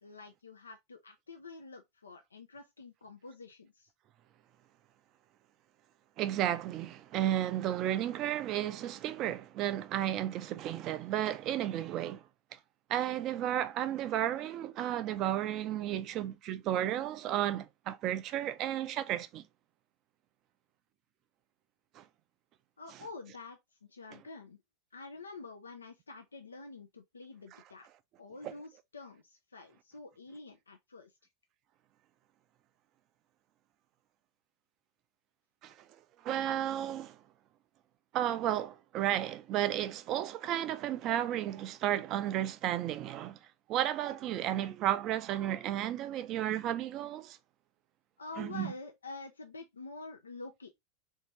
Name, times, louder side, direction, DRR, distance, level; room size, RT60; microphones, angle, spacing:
voice 1, 0.0-3.9 22.8-24.6 24.9-27.9 28.2-31.1 48.2-50.7, left 3 dB, 90° left, 0.5 m, -48 dB
voice 2, 6.2-12.2 12.9-19.4 22.0-22.1 35.6-35.7 36.2-37.1 38.1-43.4 43.7-47.4 48.4-48.7, right 12 dB, 45° right, 0.4 m, -33 dB
3.5 x 2.7 x 2.9 m
hypercardioid pair, 90°, 0 cm